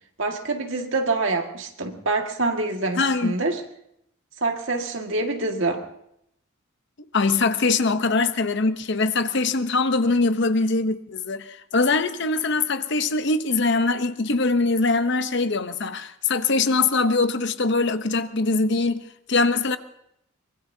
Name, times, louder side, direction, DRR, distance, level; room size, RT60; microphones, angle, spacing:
voice 1, 0.2-3.6 4.4-5.8, right 3 dB, 70° right, 1.9 m, -26 dB
voice 2, 3.0-3.3 7.1-19.8, left 3 dB, 60° left, 0.8 m, -22 dB
24.0 x 21.5 x 2.8 m
head